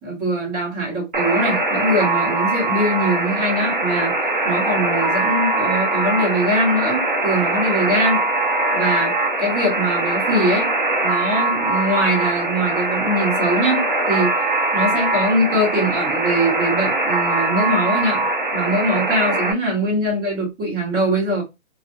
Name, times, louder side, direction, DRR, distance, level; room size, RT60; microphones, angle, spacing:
voice 1, 0.0-8.2 8.7-10.7 11.0-14.3 14.7-18.2 18.5-21.4, right 1 dB, 10° right, 1.1 m, -22 dB
Alarm, 1.1-19.5, right 2 dB, 40° right, 0.4 m, -21 dB
2.9 x 2.4 x 2.5 m
hypercardioid pair, 170°, 40 cm